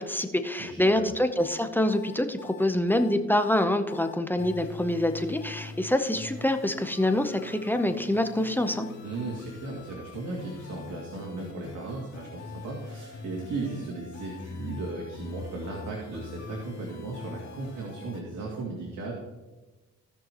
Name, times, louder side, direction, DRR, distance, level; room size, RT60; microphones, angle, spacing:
voice 1, 0.0-8.9, left 1 dB, 5° left, 7 dB, 0.8 m, -26 dB
voice 2, 0.6-1.1 9.0-19.1, right 3 dB, 70° right, -3 dB, 2.5 m, -36 dB
sound 1, 1.4-18.2, left 4 dB, 65° left, 2.9 m, -43 dB
17.0 x 6.2 x 3.0 m, 1.2 s
cardioid pair, 90°, 30 cm